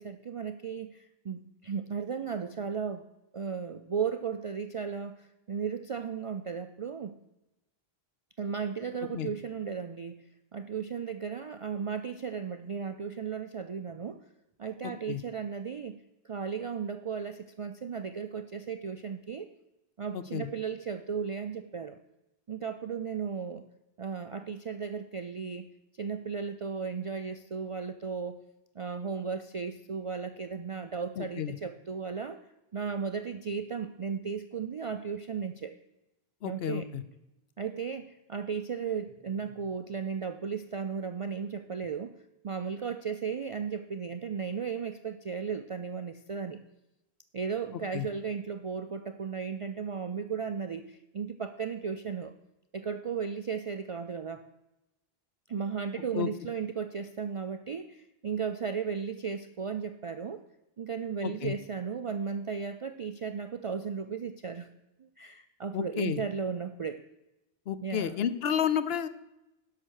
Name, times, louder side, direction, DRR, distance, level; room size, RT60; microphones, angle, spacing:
voice 1, 0.0-3.0 3.3-7.1 8.4-10.2 10.5-14.2 14.6-16.0 16.2-19.5 20.0-22.0 22.5-23.6 24.0-25.7 25.9-28.4 28.8-32.4 32.7-35.7 36.4-36.9 37.6-42.1 42.4-46.6 47.3-52.3 52.7-54.5 55.5-60.4 60.8-64.7 65.0-67.0 67.8-68.2, right 6 dB, 55° right, 9 dB, 0.3 m, -35 dB
voice 2, 20.1-20.5 31.2-31.5 36.4-37.0 47.9-48.1 56.1-56.3 61.2-61.5 65.7-66.2 67.7-69.1, left 9 dB, 70° left, 14 dB, 0.9 m, -31 dB
11.5 x 6.0 x 6.4 m, 0.94 s
omnidirectional pair, 1.1 m